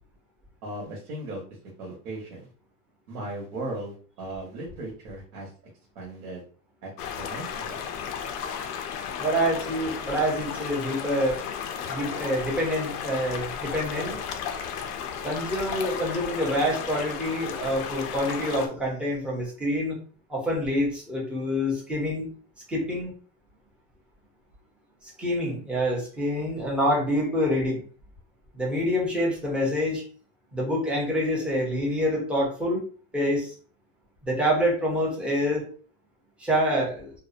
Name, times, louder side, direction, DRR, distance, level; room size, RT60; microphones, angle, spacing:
voice 1, 0.6-1.4 1.8-2.5 3.1-5.5 5.9-6.4 6.8-6.9 7.2-7.8, right 2 dB, 75° right, -3 dB, 1.0 m, -37 dB
sound 1, 7.0-18.7, left 7 dB, 90° left, 0.6 m, -34 dB
voice 2, 9.2-11.4 11.9-14.2 15.2-20.0 20.3-22.3 22.7-23.1 25.0-27.8 28.5-30.0 30.5-32.8 33.1-33.5 34.2-35.7 36.4-37.1, equal, 5° right, -3 dB, 0.5 m, -26 dB
2.6 x 2.0 x 2.4 m, 0.41 s
supercardioid pair, 135°, 44 cm